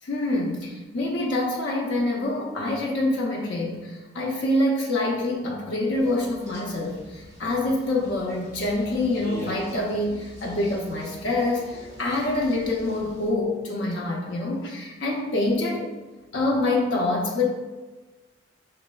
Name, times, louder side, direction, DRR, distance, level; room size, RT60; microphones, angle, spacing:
voice 1, 0.0-15.9 16.3-17.4, left 2 dB, 85° left, -2 dB, 0.6 m, -26 dB
sound 1, 5.9-13.3, equal, 20° left, 1.1 m, -44 dB
5.2 x 3.1 x 2.3 m, 1.2 s
head